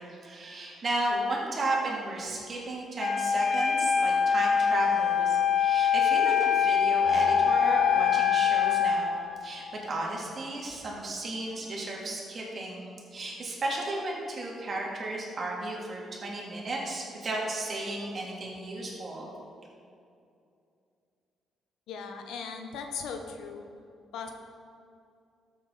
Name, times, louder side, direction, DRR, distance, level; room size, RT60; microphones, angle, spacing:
voice 1, 0.0-19.3, right 2 dB, 45° right, -3 dB, 3.0 m, -34 dB
Wind instrument woodwind instrument, 3.0-9.0, left 7 dB, 45° left, 1.1 m, -24 dB
sound 1, 7.0-10.2, left 5 dB, 25° left, 1.8 m, -33 dB
voice 2, 21.9-23.6 24.1-24.3, left 5 dB, 80° left, 4 dB, 1.2 m, -38 dB
13.0 x 8.1 x 4.3 m, 2.5 s
cardioid pair, 90°, 0 cm